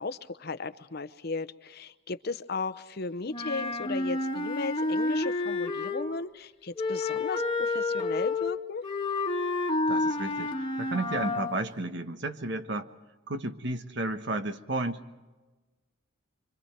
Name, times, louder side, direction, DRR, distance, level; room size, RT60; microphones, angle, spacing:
voice 1, 0.0-8.8, left 3 dB, 50° left, 12 dB, 0.8 m, -36 dB
Wind instrument woodwind instrument, 3.3-6.2 6.8-11.6, left 2 dB, 25° left, 1.5 m, -30 dB
voice 2, 9.9-12.9 13.3-15.0, right 2 dB, 60° right, 8 dB, 1.3 m, -33 dB
26.0 x 25.0 x 4.5 m, 1.2 s
head